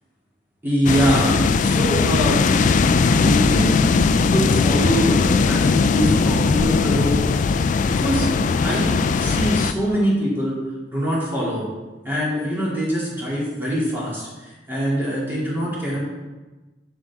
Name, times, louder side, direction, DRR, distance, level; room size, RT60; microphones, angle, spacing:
voice 1, 0.6-2.7 3.0-7.2 7.6-8.3 8.6-10.6 10.9-11.6 12.0-16.1, equal, 10° right, -7 dB, 2.7 m, -24 dB
sound 1, 0.9-9.7, left 4 dB, 45° left, 0.3 m, -19 dB
7.5 x 6.4 x 3.6 m, 1.2 s
head